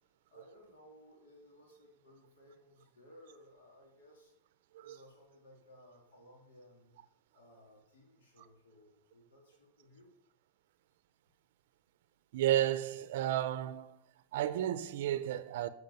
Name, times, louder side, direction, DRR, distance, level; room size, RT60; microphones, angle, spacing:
voice 1, 0.3-4.3 4.8-6.9 7.3-10.1, equal, 85° left, 2.7 m, -60 dB
voice 2, 12.3-13.9 14.3-15.7, right 12 dB, 70° right, 0.5 m, -32 dB
7.8 x 7.7 x 5.4 m
hypercardioid pair, 115°, 0 cm